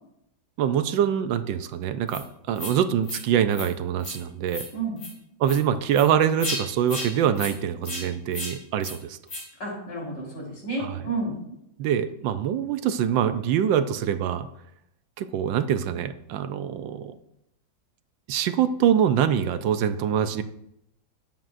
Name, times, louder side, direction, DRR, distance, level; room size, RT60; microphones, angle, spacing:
voice 1, 0.6-4.7 5.4-9.2 10.8-11.0 11.8-14.5 15.2-17.2 18.3-20.4, right 9 dB, 80° right, 10 dB, 1.3 m, -24 dB
sound 1, 2.1-2.2 2.6-2.7 3.0-3.2 3.5-3.7 4.0-4.2 4.5-4.7 5.0-5.1 5.4-5.6 5.9-6.1 6.4-6.6 6.9-7.1 7.4-7.5 7.8-8.0 8.3-8.5 8.8-9.0 9.3-9.4, left 2 dB, 85° left, 4.1 m, -33 dB
voice 2, 9.6-11.3, right 3 dB, 65° left, -3 dB, 4.6 m, -31 dB
18.0 x 7.5 x 2.6 m, 0.80 s
omnidirectional pair, 2.1 m